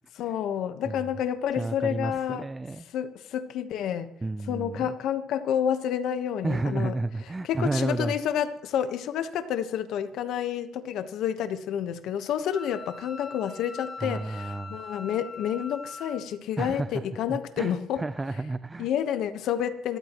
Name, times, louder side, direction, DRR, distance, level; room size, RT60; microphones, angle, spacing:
voice 1, 0.1-2.5 2.9-4.1 4.5-6.9 7.4-18.0 18.8-20.0, left 9 dB, 85° left, 10 dB, 1.2 m, -29 dB
voice 2, 1.6-2.8 4.2-4.9 6.4-8.2 14.0-14.8 16.6-17.0 17.3-18.9, right 2 dB, 20° right, 13 dB, 0.6 m, -31 dB
Wind instrument woodwind instrument, 12.5-16.3, left 4 dB, 40° left, 2.6 m, -42 dB
26.0 x 13.5 x 3.1 m, 0.69 s
cardioid pair, 90°, 0 cm